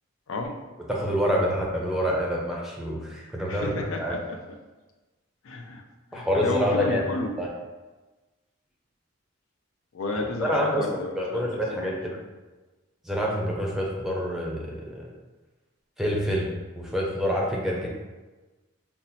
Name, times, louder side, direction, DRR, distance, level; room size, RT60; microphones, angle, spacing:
voice 1, 0.9-3.7 4.0-4.2 6.1-7.0 7.4-7.5 10.4-11.9 13.1-15.1 16.0-16.5 16.8-17.9, equal, ahead, -3 dB, 0.5 m, -27 dB
voice 2, 3.5-4.4 5.4-5.8 6.1-7.3 9.9-12.2, left 2 dB, 75° left, 3 dB, 0.5 m, -32 dB
5.7 x 2.0 x 2.7 m, 1.2 s
head